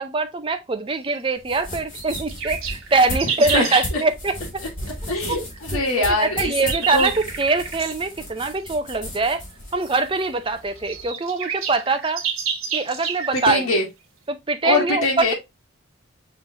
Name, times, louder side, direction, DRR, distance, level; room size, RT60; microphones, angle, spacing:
voice 1, 0.0-4.6 5.0-5.4 5.7-9.4 9.7-12.2 12.7-13.7 14.3-15.3, right 3 dB, 25° right, 0.5 m, -23 dB
sound 1, 1.4-11.1, left 1 dB, 35° left, 2.5 m, -35 dB
sound 2, 1.9-3.9 6.0-8.0 9.8-9.9 10.5-10.6 10.8-13.5, right 7 dB, 80° right, 1.1 m, -29 dB
voice 2, 3.4-3.8 5.1-7.1 13.3-13.8 14.6-15.3, left 2 dB, 75° left, 1.5 m, -23 dB
6.0 x 3.2 x 2.7 m
head